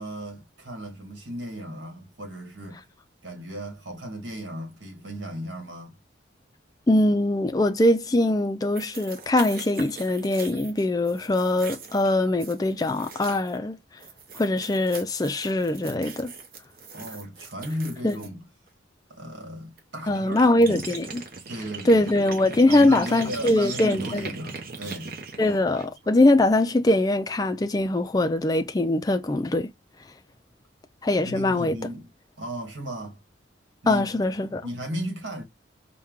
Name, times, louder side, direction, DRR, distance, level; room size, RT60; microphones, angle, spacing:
voice 1, 0.0-2.8 3.2-5.9 16.9-18.4 19.1-20.8 21.5-22.1 22.7-25.2 31.1-32.1 32.4-33.2 33.8-34.2 34.6-35.4, equal, 65° right, 1.5 m, -35 dB
voice 2, 6.9-13.8 14.3-16.3 18.0-18.2 20.1-21.2 21.9-24.3 25.4-29.7 31.0-31.7 33.9-34.6, left 1 dB, 20° left, 0.4 m, -22 dB
sound 1, 8.7-13.6 14.0-18.3 19.8-19.9 20.1-26.1, right 4 dB, 45° right, 0.8 m, -40 dB
4.4 x 2.2 x 3.5 m
head